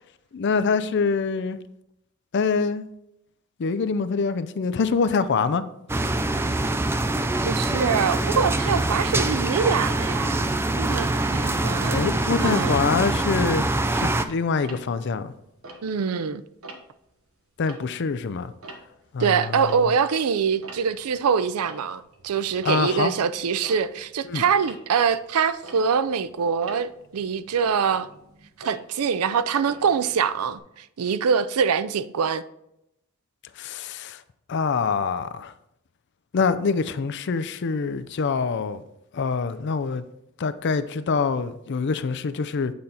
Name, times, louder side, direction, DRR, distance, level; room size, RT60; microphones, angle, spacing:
voice 1, 0.3-1.6 2.3-2.8 3.6-5.6 11.9-15.3 17.6-18.5 19.1-19.7 22.6-23.1 24.3-24.4 33.6-34.2 34.5-35.5 36.3-38.8 39.1-40.1 40.4-42.7, left 5 dB, 55° left, 0.4 m, -25 dB
sound 1, 5.9-14.3, right 2 dB, 10° right, 0.3 m, -24 dB
voice 2, 7.4-10.5 10.8-12.1 12.4-12.8 15.8-16.4 19.2-28.1 28.6-32.4, right 6 dB, 85° right, 0.4 m, -24 dB
Tick-tock, 14.6-16.3 16.6-17.1 17.5-20.2 20.5-30.6, right 2 dB, 70° right, 1.1 m, -45 dB
8.6 x 4.3 x 4.0 m
head